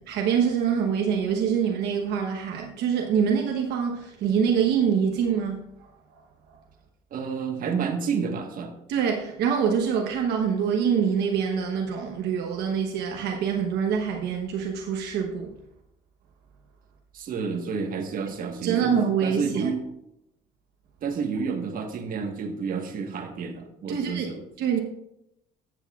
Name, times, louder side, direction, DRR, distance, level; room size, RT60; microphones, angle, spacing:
voice 1, 0.1-5.6 6.1-6.2 8.9-15.6 18.6-19.7 23.9-24.3 24.6-24.8, right 7 dB, 80° right, 1.0 m, -25 dB
voice 2, 7.1-8.7 17.1-18.9 19.2-19.8 21.0-24.4, right 5 dB, 55° right, 1.4 m, -30 dB
14.0 x 8.1 x 2.4 m
cardioid pair, 110°, 17 cm